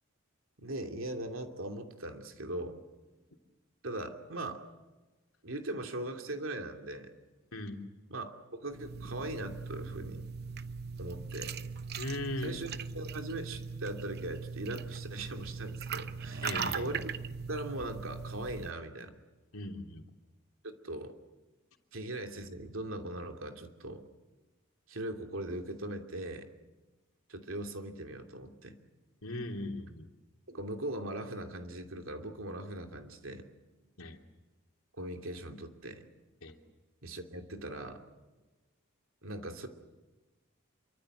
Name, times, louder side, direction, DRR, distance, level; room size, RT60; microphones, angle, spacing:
voice 1, 0.6-2.8 3.8-4.6 5.4-7.1 8.1-10.3 11.0-11.5 12.4-12.7 12.9-16.5 16.7-17.1 17.5-19.1 20.8-21.1 21.9-24.0 24.9-26.5 27.3-28.7 30.5-33.4 35.0-36.0 37.0-38.0 39.2-39.7, right 1 dB, 70° right, 5 dB, 2.8 m, -40 dB
voice 2, 7.5-7.8 12.0-12.6 16.4-16.9 19.5-20.0 29.2-30.1 34.0-34.2 36.4-36.6, left 1 dB, 85° left, 3 dB, 3.0 m, -38 dB
sound 1, 8.7-18.7, right 5 dB, 50° right, 0.9 m, -40 dB
27.0 x 24.5 x 7.9 m, 1.2 s
head